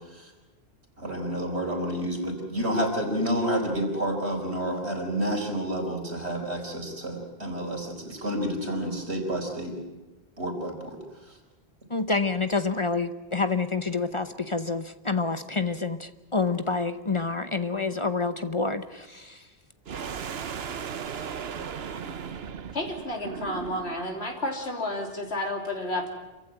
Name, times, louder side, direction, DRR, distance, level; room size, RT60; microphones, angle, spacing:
voice 1, 1.0-9.8 10.4-11.0 11.3-11.4, equal, 85° right, 2 dB, 4.8 m, -29 dB
voice 2, 11.9-19.4, left 4 dB, 30° left, 11 dB, 0.8 m, -28 dB
sound 1, 19.9-24.2, right 7 dB, 70° right, 1.2 m, -36 dB
voice 3, 22.7-26.1, left 1 dB, 80° left, 3 dB, 3.4 m, -31 dB
27.5 x 15.0 x 8.9 m, 1.1 s
omnidirectional pair, 1.1 m